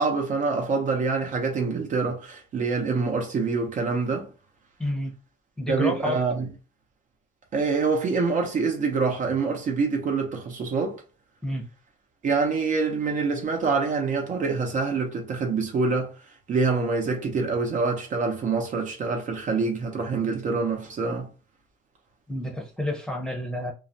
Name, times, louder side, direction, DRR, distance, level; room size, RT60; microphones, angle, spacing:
voice 1, 0.0-4.3 5.7-6.5 7.5-11.0 12.2-16.1 16.5-21.3, right 4 dB, 50° right, 0.7 m, -25 dB
voice 2, 4.8-5.2 5.6-6.2 11.4-11.7 22.3-23.7, left 1 dB, 5° left, 0.7 m, -29 dB
2.3 x 2.1 x 2.7 m
cardioid pair, 110°, 17 cm